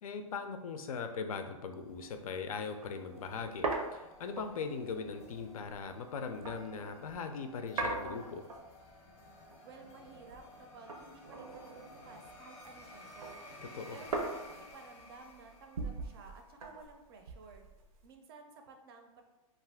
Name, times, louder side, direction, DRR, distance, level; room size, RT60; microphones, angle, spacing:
voice 1, 0.0-8.5 13.6-14.0, left 5 dB, 90° left, 7 dB, 0.4 m, -40 dB
sound 1, 1.7-16.3, left 1 dB, 25° left, 0.4 m, -55 dB
sound 2, 1.9-2.1 2.4-2.5 2.8-7.2 7.8-8.9 9.2-10.6 10.9-12.6 12.9-18.1, right 3 dB, 85° right, 0.6 m, -41 dB
voice 2, 9.6-13.4 13.9-17.6 18.0-19.2, right 4 dB, 45° right, 4 dB, 0.4 m, -54 dB
2.5 x 2.4 x 3.4 m, 1.1 s
hypercardioid pair, 155°, 18 cm